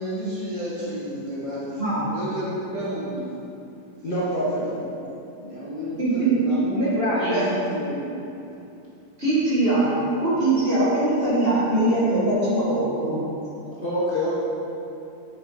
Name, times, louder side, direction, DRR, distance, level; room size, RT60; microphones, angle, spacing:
voice 1, 0.0-1.8 2.1-3.2 4.6-8.1, equal, 15° left, -9 dB, 1.3 m, -32 dB
voice 2, 1.8-2.1 6.0-6.3 6.8-7.5 9.2-9.9 10.2-13.2, right 2 dB, 20° right, -10 dB, 2.0 m, -22 dB
voice 3, 4.0-4.7 5.9-6.4 13.8-14.4, equal, 80° left, -10 dB, 0.4 m, -26 dB
10.0 x 5.8 x 5.1 m, 2.7 s
omnidirectional pair, 3.7 m